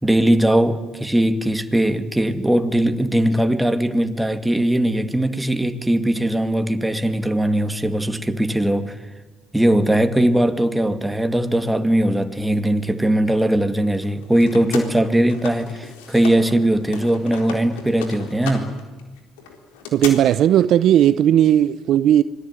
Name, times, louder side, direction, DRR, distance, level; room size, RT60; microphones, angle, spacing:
voice 1, 0.0-9.0 9.5-18.8, right 1 dB, 5° right, 2.5 m, -20 dB
sound 1, 13.9-16.5 16.8-20.1, left 7 dB, 85° left, 4.0 m, -35 dB
voice 2, 19.9-22.2, right 11 dB, 65° right, 0.7 m, -16 dB
25.5 x 21.0 x 9.7 m
hypercardioid pair, 65°, 0 cm